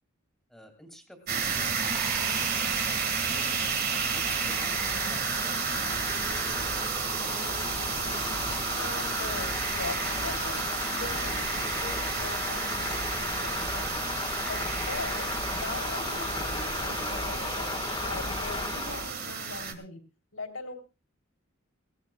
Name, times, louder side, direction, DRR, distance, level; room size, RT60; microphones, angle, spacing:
voice 1, 0.5-3.6 4.1-5.8, equal, ahead, 5 dB, 2.5 m, -51 dB
sound 1, 1.3-19.7, right 6 dB, 45° right, 1.9 m, -31 dB
sound 2, 1.8-7.2, right 4 dB, 20° right, 0.8 m, -45 dB
sound 3, 2.1-19.1, left 3 dB, 20° left, 1.6 m, -35 dB
voice 2, 8.7-20.0 20.3-20.7, left 3 dB, 85° left, 5 dB, 3.5 m, -41 dB
20.0 x 17.5 x 2.4 m, 0.31 s
head